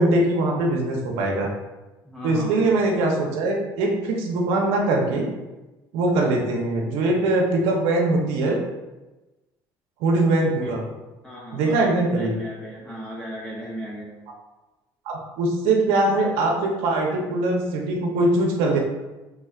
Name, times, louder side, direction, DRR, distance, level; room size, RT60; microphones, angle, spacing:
voice 1, 0.0-1.5 2.2-5.3 5.9-8.6 10.0-10.8 11.5-12.3 15.1-18.8, right 2 dB, 85° right, 0 dB, 0.7 m, -22 dB
voice 2, 2.0-2.7 10.4-10.8 11.2-14.1, equal, 10° left, -5 dB, 0.6 m, -36 dB
3.5 x 3.2 x 2.3 m, 1.1 s
supercardioid pair, 85°, 9 cm